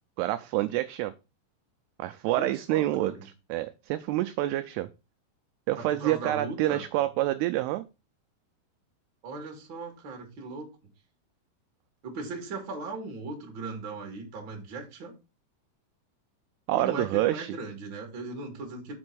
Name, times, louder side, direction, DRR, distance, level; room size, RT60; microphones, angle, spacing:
voice 1, 0.2-1.1 2.0-3.1 3.5-4.9 5.7-7.9 16.7-17.6, right 15 dB, 85° right, 2.4 m, -27 dB
voice 2, 2.3-3.3 5.7-6.8 9.2-10.9 12.0-15.1 16.7-19.0, right 3 dB, 35° right, 2.2 m, -38 dB
7.6 x 4.4 x 6.1 m
omnidirectional pair, 5.0 m